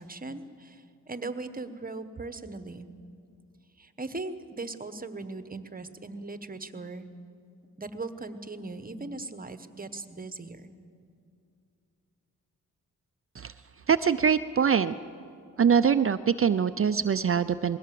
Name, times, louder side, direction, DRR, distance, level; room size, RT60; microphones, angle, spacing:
voice 1, 0.0-2.9 3.8-7.1 7.8-10.7, right 3 dB, 25° right, 11 dB, 1.1 m, -39 dB
voice 2, 13.9-14.9 15.6-17.8, right 7 dB, 45° right, 12 dB, 0.5 m, -23 dB
21.0 x 16.5 x 7.7 m, 2.5 s
cardioid pair, 75°, 32 cm